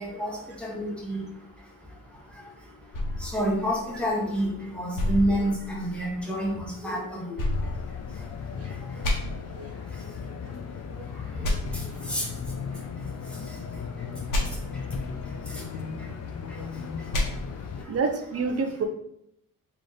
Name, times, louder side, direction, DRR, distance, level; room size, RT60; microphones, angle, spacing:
voice 1, 0.0-18.0, equal, 5° left, -5 dB, 1.6 m, -33 dB
sound 1, 2.9-4.4 4.9-6.2 7.4-8.5 9.0-9.1 11.4-11.5 14.3-14.4 17.1-17.2, left 1 dB, 65° left, 1.2 m, -29 dB
sound 2, 7.5-17.9, left 6 dB, 45° left, 0.5 m, -36 dB
voice 2, 9.3-9.7 10.9-11.0 17.9-18.8, right 4 dB, 45° right, 5 dB, 0.7 m, -29 dB
3.7 x 3.3 x 3.8 m, 0.74 s
cardioid pair, 105°, 35 cm